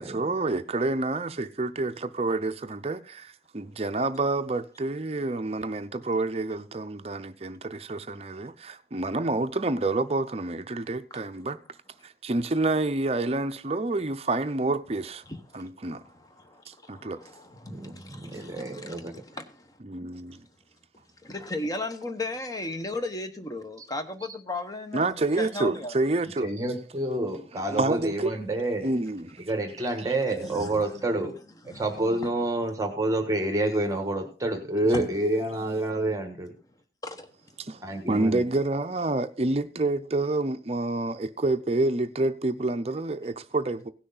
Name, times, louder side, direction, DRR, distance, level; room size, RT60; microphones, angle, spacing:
voice 1, 0.0-11.6 12.0-15.2 15.5-16.0 16.7-17.2 19.8-20.5 24.9-26.5 27.5-28.3 28.8-29.5 37.6-37.8 38.1-43.9, right 2 dB, 35° right, 0.6 m, -28 dB
voice 2, 15.3-19.8 21.2-25.1 25.4-26.0 30.4-31.4 31.6-32.3 34.9-35.1 37.0-37.3, left 2 dB, 20° left, 1.0 m, -36 dB
voice 3, 17.6-19.1 26.4-28.9 29.4-31.3 31.7-36.5 37.8-38.4, right 1 dB, 20° right, 1.3 m, -28 dB
17.0 x 6.3 x 4.0 m
head